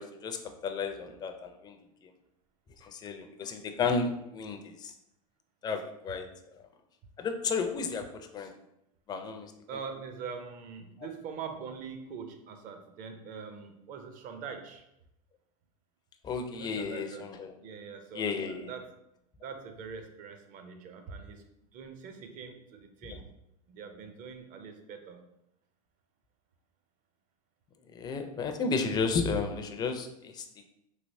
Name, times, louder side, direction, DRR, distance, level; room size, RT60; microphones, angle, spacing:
voice 1, 0.0-1.8 2.8-4.9 5.6-6.3 7.2-8.5 9.1-9.5 16.2-17.5 18.1-18.7 23.1-23.2 27.9-30.6, left 4 dB, 20° left, 6 dB, 0.4 m, -33 dB
voice 2, 9.7-14.8 16.5-17.3 17.6-18.9 19.4-23.3 23.7-25.3, right 6 dB, 40° right, 6 dB, 0.6 m, -43 dB
3.2 x 2.8 x 2.6 m, 0.81 s
hypercardioid pair, 105°, 20 cm